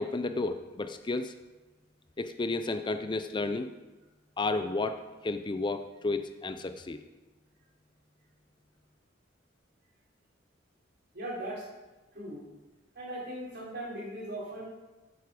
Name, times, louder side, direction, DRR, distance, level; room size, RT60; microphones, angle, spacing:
voice 1, 0.0-1.3 2.2-3.7 4.4-7.0, left 3 dB, 25° left, 9 dB, 0.4 m, -32 dB
voice 2, 11.1-11.6 12.1-12.5 12.9-14.7, right 1 dB, 60° right, -5 dB, 4.1 m, -38 dB
9.5 x 8.2 x 5.1 m, 1.1 s
head